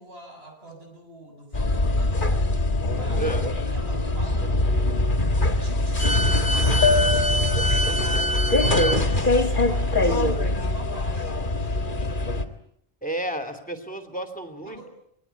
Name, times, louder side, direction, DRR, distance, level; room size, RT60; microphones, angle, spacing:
voice 1, 0.0-2.2 2.9-3.3 3.7-4.7 5.4-12.1 14.6-14.9, right 1 dB, 75° right, 3 dB, 7.8 m, -43 dB
sound 1, 1.5-12.5, left 2 dB, 50° left, 2.0 m, -22 dB
voice 2, 3.1-3.5 13.0-14.9, right 2 dB, 10° left, 8 dB, 2.9 m, -31 dB
27.0 x 21.0 x 8.3 m, 0.70 s
omnidirectional pair, 1.0 m